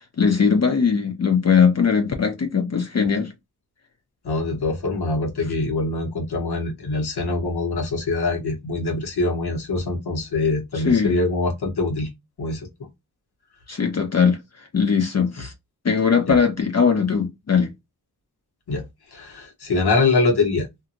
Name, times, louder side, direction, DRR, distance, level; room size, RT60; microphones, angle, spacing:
voice 1, 0.2-3.3 10.7-11.2 13.7-15.5 15.8-17.7, left 6 dB, 45° left, 0.6 m, -20 dB
voice 2, 4.2-12.1 12.4-12.7 16.3-16.4 18.7-18.8 19.1-20.7, left 3 dB, 90° left, 1.0 m, -24 dB
2.7 x 2.5 x 2.5 m
wide cardioid pair, 70°, 38 cm